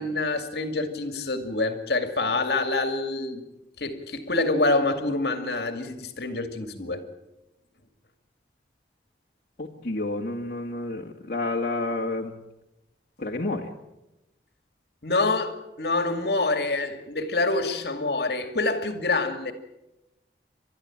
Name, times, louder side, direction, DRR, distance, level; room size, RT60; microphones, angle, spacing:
voice 1, 0.0-3.4 3.8-7.0 15.0-19.5, left 2 dB, 65° left, 2.4 m, -26 dB
voice 2, 9.6-12.4 13.2-13.7, left 2 dB, 50° left, 2.0 m, -30 dB
30.0 x 13.0 x 8.9 m
head